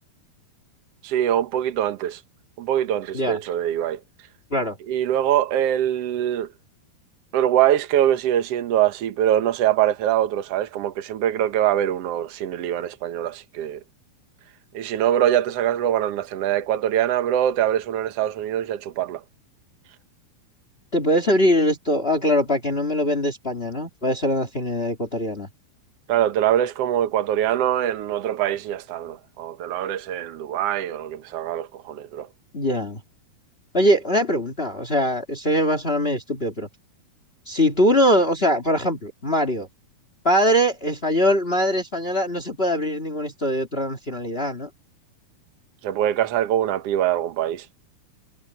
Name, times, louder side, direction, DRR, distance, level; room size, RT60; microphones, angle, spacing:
voice 1, 1.0-2.2 2.6-4.0 4.9-6.5 7.3-13.8 14.7-19.2 26.1-32.3 45.8-47.6, right 11 dB, 65° right, 1.5 m, -23 dB
voice 2, 20.9-25.5 32.5-33.0 33.7-36.7 37.4-39.7 40.2-44.7, equal, 25° left, 1.5 m, -22 dB
omnidirectional pair, 4.5 m